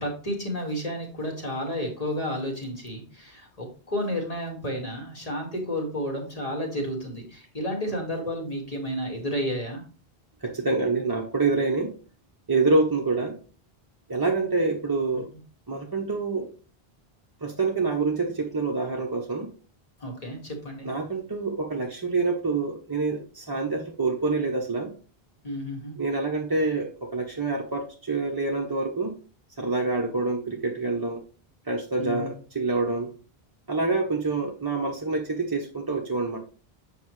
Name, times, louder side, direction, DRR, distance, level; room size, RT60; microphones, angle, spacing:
voice 1, 0.0-9.8 20.0-20.9 25.4-25.9 32.0-32.3, equal, 35° left, 0 dB, 2.0 m, -31 dB
voice 2, 10.4-11.9 12.5-13.4 14.1-15.3 15.7-16.5 17.4-19.5 20.8-24.9 26.0-29.1 29.6-31.2 31.7-33.1 33.7-36.4, right 3 dB, 25° right, 0 dB, 0.8 m, -26 dB
7.8 x 5.5 x 3.1 m, 0.37 s
omnidirectional pair, 1.0 m